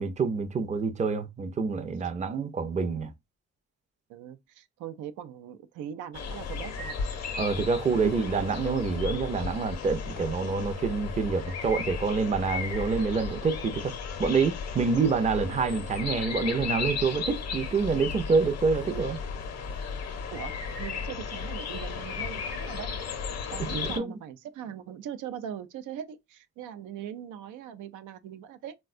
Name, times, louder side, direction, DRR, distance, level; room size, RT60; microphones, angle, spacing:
voice 1, 0.0-3.1 7.4-19.2 23.7-24.1, right 4 dB, 25° right, 0.5 m, -27 dB
voice 2, 4.1-7.0 8.0-8.2 9.3-9.5 18.8-19.1 20.3-23.0 23.5-28.8, right 9 dB, 80° right, 0.5 m, -40 dB
sound 1, 6.1-24.0, left 5 dB, 60° left, 0.7 m, -35 dB
3.5 x 2.2 x 2.4 m
cardioid pair, 90°, 30 cm